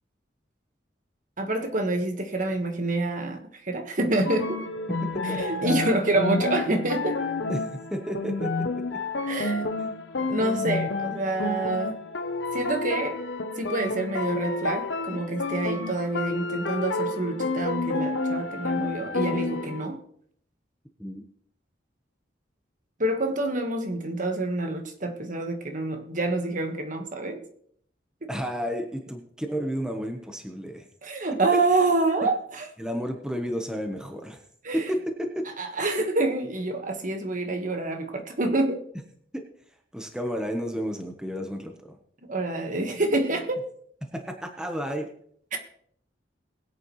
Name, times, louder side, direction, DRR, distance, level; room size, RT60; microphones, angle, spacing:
voice 1, 1.4-4.6 5.2-7.2 9.2-9.7 10.2-11.9 12.5-13.2 13.6-20.0 23.0-27.4 28.2-28.3 31.0-32.7 34.6-34.9 35.6-38.8 42.3-43.6 45.5-45.6, right 2 dB, 45° right, 5 dB, 1.5 m, -27 dB
sound 1, 4.3-19.9, left 3 dB, 90° left, 0.9 m, -30 dB
voice 2, 5.1-5.8 7.5-9.0 21.0-21.2 28.3-30.8 31.3-31.6 32.8-34.4 34.7-35.5 39.3-39.4 39.9-42.0 44.1-45.1, equal, 5° right, 4 dB, 1.1 m, -32 dB
21.0 x 8.3 x 3.2 m, 0.64 s
head